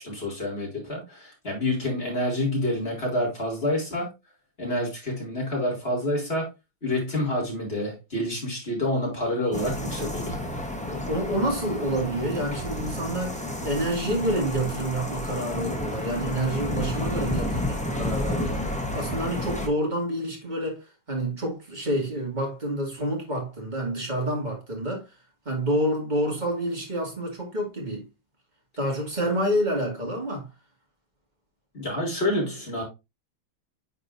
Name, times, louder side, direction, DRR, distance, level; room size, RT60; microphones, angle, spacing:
voice 1, 0.0-4.1 4.6-6.5 6.8-10.4 31.7-32.8, left 1 dB, 30° left, 3.5 m, -28 dB
sound 1, 9.5-19.7, left 1 dB, 5° left, 0.6 m, -31 dB
voice 2, 10.8-25.1 25.4-28.1 28.8-30.5, right 1 dB, 20° right, 2.4 m, -28 dB
9.8 x 4.5 x 2.6 m
omnidirectional pair, 2.2 m